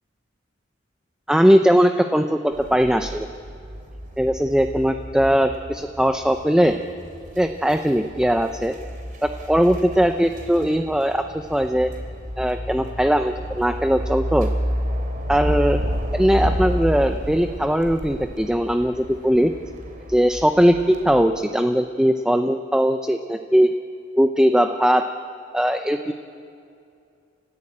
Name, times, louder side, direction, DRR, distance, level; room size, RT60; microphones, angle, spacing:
voice 1, 1.3-3.3 4.2-6.8 7.4-8.7 9.2-11.9 12.4-14.5 15.3-15.8 16.1-19.5 20.1-23.7 24.2-25.1 25.5-26.1, equal, 5° right, 6 dB, 0.6 m, -19 dB
sound 1, 2.5-21.2, equal, 50° right, 3.4 m, -31 dB
30.0 x 15.0 x 8.6 m, 2.6 s
head